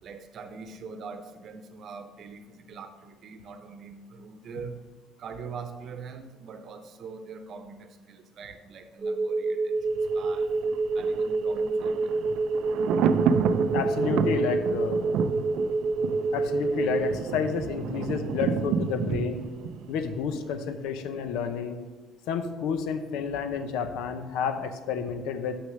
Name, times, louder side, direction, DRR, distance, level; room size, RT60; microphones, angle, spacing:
voice 1, 0.0-4.8 5.2-10.5 10.9-12.1, right 5 dB, 45° right, 8 dB, 0.8 m, -43 dB
sound 1, 9.0-17.1, right 3 dB, 15° right, 1.0 m, -27 dB
Thunder, 9.9-20.8 21.1-21.2, right 7 dB, 65° right, 0.4 m, -30 dB
voice 2, 13.7-15.0 16.3-19.5 19.9-21.8 22.3-25.6, left 6 dB, 90° left, 9 dB, 0.8 m, -30 dB
6.5 x 6.4 x 6.4 m, 1.3 s
cardioid pair, 160°, 0 cm